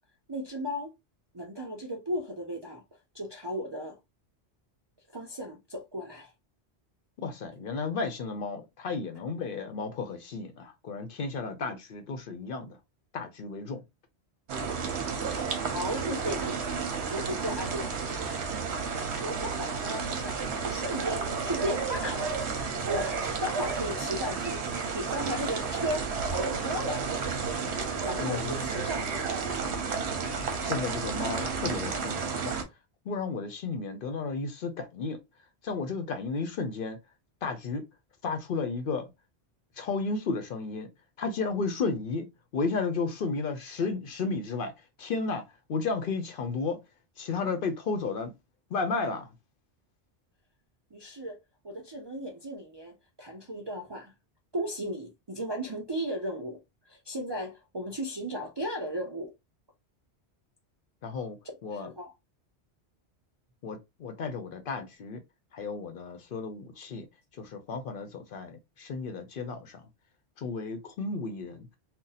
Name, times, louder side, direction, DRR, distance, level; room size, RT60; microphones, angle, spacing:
voice 1, 0.3-0.9 1.3-2.8 3.1-4.0 5.1-6.3 15.7-16.6 17.1-18.2 19.2-22.4 22.8-27.0 28.0-29.3 50.9-51.4 51.6-54.1 54.5-56.6 56.9-59.3 61.7-62.1, equal, 40° right, 0.4 m, -35 dB
voice 2, 7.2-12.8 13.1-13.8 28.2-28.6 30.6-32.6 33.1-35.2 35.6-37.0 37.4-37.8 38.2-39.1 39.8-40.9 41.2-42.3 42.5-44.7 45.0-45.4 45.7-46.8 47.2-48.3 48.7-49.3 61.0-61.4 61.6-61.9 63.6-65.2 65.5-67.1 67.4-69.8 70.4-71.7, left 4 dB, 60° left, 0.6 m, -33 dB
sound 1, 14.5-32.6, right 5 dB, 75° right, 1.0 m, -32 dB
2.6 x 2.1 x 3.9 m
omnidirectional pair, 1.2 m